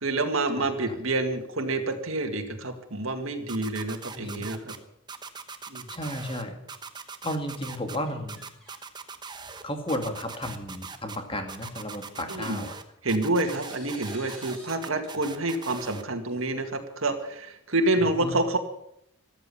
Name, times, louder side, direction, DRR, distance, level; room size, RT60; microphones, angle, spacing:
voice 1, 0.0-4.7 5.7-5.9 12.3-12.6 13.0-18.6, right 2 dB, 75° right, 4 dB, 2.1 m, -28 dB
voice 2, 0.6-1.0 4.1-4.5 5.9-6.6 7.2-8.4 9.6-12.8 18.0-18.3, left 1 dB, 25° left, 5 dB, 2.2 m, -33 dB
sound 1, 3.5-4.8 5.1-6.4 6.7-8.0 8.3-9.6 9.9-11.2 11.5-12.8 13.1-16.0, right 5 dB, 20° right, 1.0 m, -40 dB
sound 2, 8.1-8.8 9.2-9.7 10.5-10.6 10.9-11.0 12.3-12.9 13.4-14.7 15.0-15.1 16.3-17.1, equal, 5° left, 5.8 m, -50 dB
14.0 x 13.5 x 7.1 m, 0.77 s
head